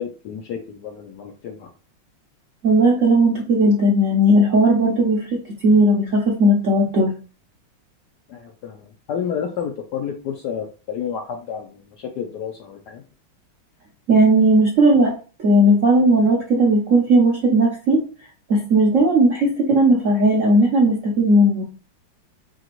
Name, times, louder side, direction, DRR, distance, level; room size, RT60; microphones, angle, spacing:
voice 1, 0.0-1.7 8.3-13.0, left 8 dB, 70° left, 3 dB, 1.0 m, -30 dB
voice 2, 2.6-7.2 14.1-15.2 15.4-18.0 18.5-21.6, right 1 dB, 60° right, -2 dB, 0.8 m, -16 dB
5.2 x 2.9 x 2.9 m, 0.35 s
omnidirectional pair, 2.2 m